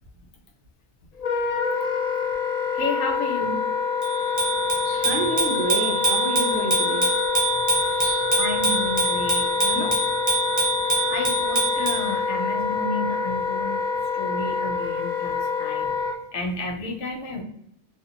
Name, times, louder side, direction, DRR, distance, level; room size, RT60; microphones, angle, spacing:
Wind instrument woodwind instrument, 1.2-16.1, left 5 dB, 60° left, 0.4 m, -26 dB
voice 1, 2.7-3.6 7.7-8.0 8.4-10.0 11.1-13.8 14.1-17.4, left 2 dB, 85° left, 2 dB, 0.9 m, -32 dB
Bicycle bell, 4.0-12.1, right 1 dB, 25° right, 0.5 m, -25 dB
voice 2, 4.8-7.1 8.0-8.3 15.8-15.9, right 3 dB, 25° left, -4 dB, 0.7 m, -29 dB
2.8 x 2.4 x 2.5 m, 0.72 s
omnidirectional pair, 1.2 m